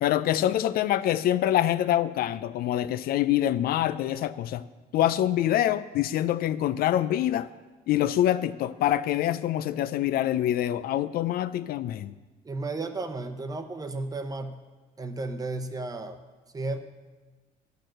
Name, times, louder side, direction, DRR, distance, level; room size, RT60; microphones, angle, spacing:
voice 1, 0.0-4.7 4.9-7.5 7.9-12.1, left 12 dB, 65° left, 14 dB, 0.4 m, -25 dB
voice 2, 12.4-14.6 15.0-16.2 16.5-16.8, right 2 dB, 20° right, 8 dB, 0.8 m, -33 dB
10.0 x 6.6 x 6.4 m, 1.3 s
cardioid pair, 110°, 17 cm